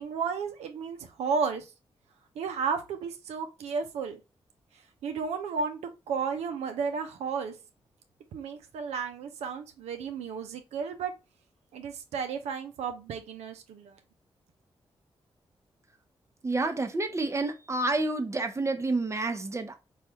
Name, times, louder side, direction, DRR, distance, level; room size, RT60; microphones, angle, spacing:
voice 1, 0.0-1.7 2.4-4.2 5.0-5.8 6.1-7.5 8.3-11.1 11.7-13.9, right 5 dB, 90° right, 0.4 m, -33 dB
voice 2, 16.4-19.8, right 2 dB, 25° right, 0.6 m, -29 dB
3.2 x 2.3 x 2.8 m
supercardioid pair, 50°, 11 cm